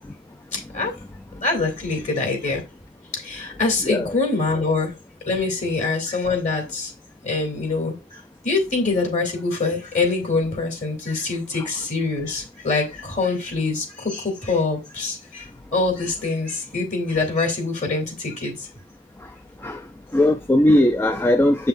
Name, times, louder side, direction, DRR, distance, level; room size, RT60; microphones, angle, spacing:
voice 1, 0.5-0.9 1.4-2.6 3.1-4.9 5.3-6.9 7.2-18.7, left 3 dB, 45° left, 2.5 m, -24 dB
voice 2, 3.8-4.1 11.5-11.7 19.6-19.8 20.1-21.7, left 1 dB, 15° left, 0.3 m, -19 dB
7.9 x 5.6 x 2.5 m
head